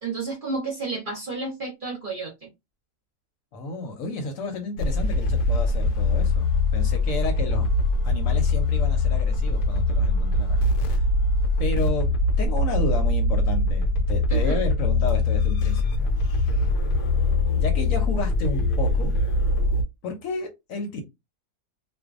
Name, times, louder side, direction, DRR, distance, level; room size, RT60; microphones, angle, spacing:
voice 1, 0.0-2.5 14.3-14.6, right 3 dB, 45° right, 0 dB, 0.8 m, -31 dB
voice 2, 3.5-7.7 8.0-11.0 11.6-16.1 17.6-19.1 20.0-21.0, left 3 dB, 65° left, 4 dB, 1.0 m, -32 dB
sound 1, 4.8-19.8, left 2 dB, 90° left, 1.1 m, -22 dB
2.5 x 2.2 x 2.4 m, 0.21 s
omnidirectional pair, 1.6 m